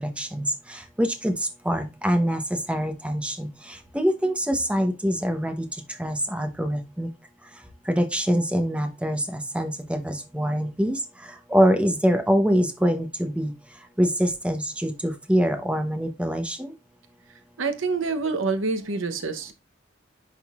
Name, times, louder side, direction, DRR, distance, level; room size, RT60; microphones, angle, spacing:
voice 1, 1.0-1.3 1.7-2.4 2.7-3.5 3.9-5.6 6.0-7.1 7.9-10.9 11.5-13.5 14.0-16.7, equal, 5° right, 0.9 m, -24 dB
voice 2, 17.6-19.5, right 4 dB, 70° right, 0.9 m, -26 dB
10.5 x 3.7 x 2.4 m
head